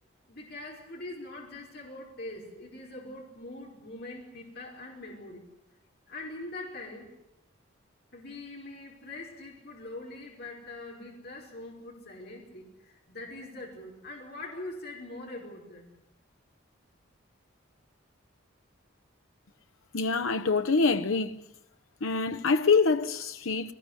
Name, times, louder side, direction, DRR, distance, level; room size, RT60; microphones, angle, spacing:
voice 1, 0.3-5.4 6.1-7.1 8.1-15.8, left 2 dB, 50° left, 5.1 m, -43 dB
voice 2, 19.9-21.5 22.0-23.7, left 4 dB, 85° left, 0.9 m, -25 dB
22.5 x 20.5 x 9.8 m
head